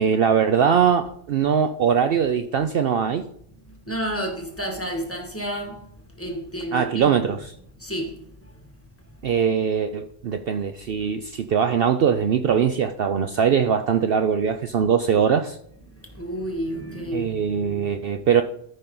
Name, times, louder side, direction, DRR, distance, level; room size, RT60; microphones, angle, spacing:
voice 1, 0.0-3.3 6.7-7.5 9.2-15.6 17.1-18.4, right 7 dB, 60° right, 0.7 m, -21 dB
voice 2, 3.9-5.8 6.1-7.1 7.8-8.6 16.0-17.3, equal, 10° left, 1.6 m, -31 dB
13.5 x 5.5 x 3.8 m
omnidirectional pair, 1.2 m